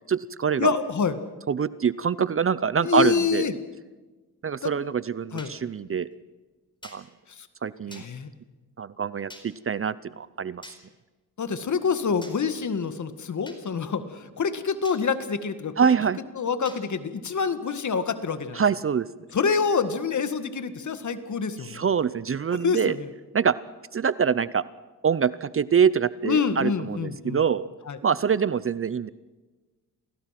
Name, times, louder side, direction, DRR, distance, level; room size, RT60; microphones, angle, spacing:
voice 1, 0.1-0.7 1.5-3.5 4.4-6.1 6.8-7.1 7.6-8.0 8.8-10.7 15.8-16.2 18.5-19.1 21.6-23.0 23.3-23.5 23.9-24.6 25.0-27.7 28.0-29.1, right 7 dB, 35° right, 18 dB, 0.6 m, -25 dB
voice 2, 0.6-1.2 2.8-3.5 4.6-4.7 5.3-5.5 7.3-7.5 7.9-8.3 11.4-15.9 16.4-18.6 19.3-21.8 22.5-23.1 26.2-27.4 27.9-28.0, left 6 dB, 45° left, 11 dB, 1.9 m, -27 dB
sound 1, 5.4-5.5 6.8-7.0 7.9-8.1 9.3-9.5 10.6-10.8 12.2-12.4 13.5-13.6 14.8-15.0 16.7-16.8, left 1 dB, 10° left, 4.4 m, -44 dB
28.0 x 18.0 x 6.0 m, 1.3 s
cardioid pair, 90°, 39 cm